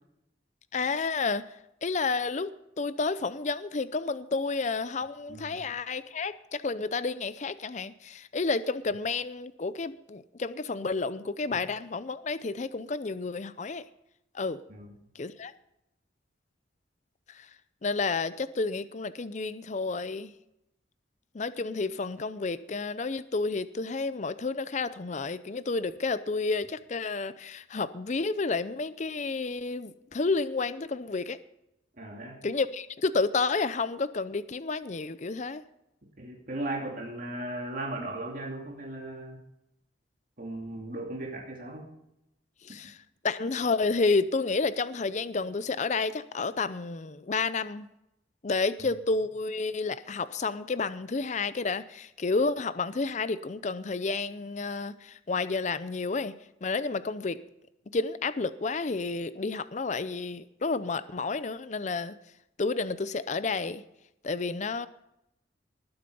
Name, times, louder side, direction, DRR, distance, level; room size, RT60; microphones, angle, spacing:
voice 1, 0.7-1.5 1.8-13.8 14.3-14.6 15.2-15.5 17.3-17.5 17.8-20.3 21.3-31.4 32.4-35.6 42.6-43.0 43.2-47.9 48.4-56.3 56.6-57.4 57.9-62.1 62.6-63.8 64.2-64.9, left 4 dB, 40° left, 14 dB, 0.5 m, -30 dB
voice 2, 5.3-5.6 14.7-14.9 32.0-32.4 36.2-39.4 40.4-41.9 48.8-48.9, right 1 dB, 45° right, 0 dB, 2.6 m, -37 dB
20.0 x 7.9 x 5.4 m, 0.83 s
head